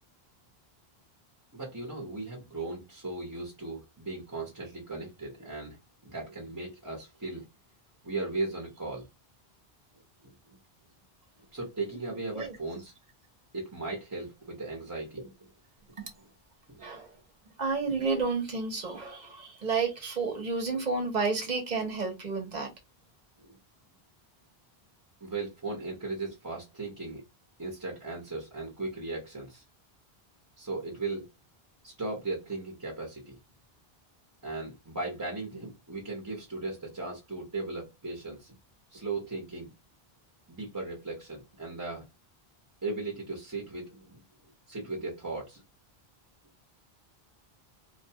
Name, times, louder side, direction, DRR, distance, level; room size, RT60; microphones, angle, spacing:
voice 1, 1.5-7.5 8.0-9.1 10.2-10.3 11.5-12.9 13.5-15.5 16.7-16.8 23.4-23.6 25.2-27.2 27.6-29.6 30.6-31.3 31.8-33.4 34.4-38.5 38.9-39.7 40.5-42.1 42.8-44.2 44.7-45.6, right 3 dB, 20° right, 0.8 m, -37 dB
voice 2, 17.6-22.7, right 4 dB, 45° right, 1.0 m, -31 dB
2.5 x 2.2 x 2.7 m
omnidirectional pair, 1.0 m